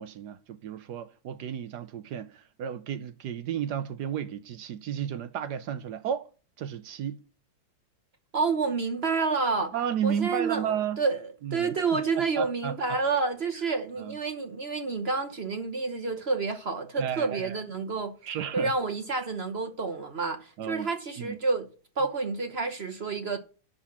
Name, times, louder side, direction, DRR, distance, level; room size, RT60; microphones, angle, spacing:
voice 1, 0.0-6.3 6.6-7.2 9.7-11.0 11.4-12.8 14.0-14.2 17.0-17.6 18.2-18.7 20.6-20.9 21.2-21.4, right 9 dB, 65° right, 1.2 m, -33 dB
voice 2, 8.3-9.7 10.0-18.1 18.5-21.7 22.0-23.4, right 4 dB, 45° right, 0.9 m, -29 dB
9.9 x 6.7 x 7.1 m
omnidirectional pair, 2.1 m